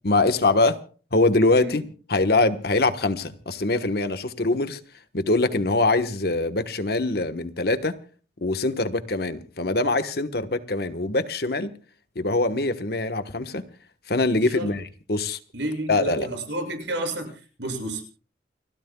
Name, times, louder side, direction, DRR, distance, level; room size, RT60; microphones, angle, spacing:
voice 1, 0.0-0.8 1.1-1.8 2.1-4.8 5.1-8.0 8.4-11.7 12.1-13.6 14.1-15.4 15.9-16.3, left 2 dB, 60° left, 1.3 m, -23 dB
voice 2, 14.4-14.7 15.5-18.0, right 1 dB, 85° right, 6.8 m, -31 dB
29.5 x 14.5 x 2.3 m
head